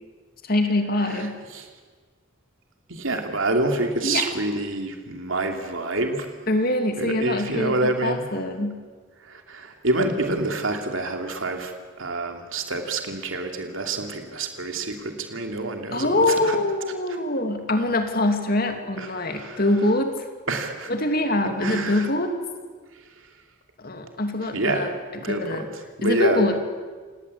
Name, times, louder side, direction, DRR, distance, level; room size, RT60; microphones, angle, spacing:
voice 1, 0.4-1.4 4.0-4.2 6.5-8.8 15.9-20.1 20.9-22.3 23.8-24.9 25.3-25.7 26.0-26.6, left 2 dB, 45° left, 5 dB, 2.6 m, -24 dB
voice 2, 2.9-6.3 7.0-8.2 9.2-11.7 12.0-16.6 17.1-17.2 19.0-19.6 20.5-20.9 21.6-22.1 24.5-24.9 25.2-25.7 26.0-26.4, right 2 dB, 70° right, 4 dB, 2.9 m, -27 dB
28.0 x 18.0 x 8.6 m, 1.5 s
head